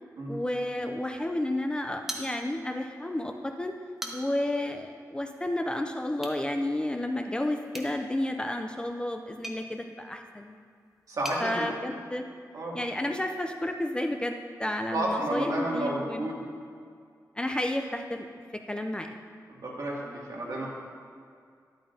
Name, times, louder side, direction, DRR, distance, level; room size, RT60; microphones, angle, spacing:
voice 1, 0.3-3.7 4.1-10.7 11.4-12.2 12.7-16.5 17.4-18.3 18.5-19.1, left 1 dB, 15° left, 4 dB, 0.4 m, -31 dB
sound 1, 2.1-2.8 3.2-3.3 3.8-4.5 6.1-6.4 7.7-11.4, right 1 dB, 5° right, 0.9 m, -42 dB
voice 2, 11.1-11.7 12.5-12.8 14.9-16.4 19.5-20.7, right 1 dB, 60° right, -5 dB, 2.2 m, -31 dB
12.0 x 10.5 x 2.7 m, 2.2 s
wide cardioid pair, 150°, 7 cm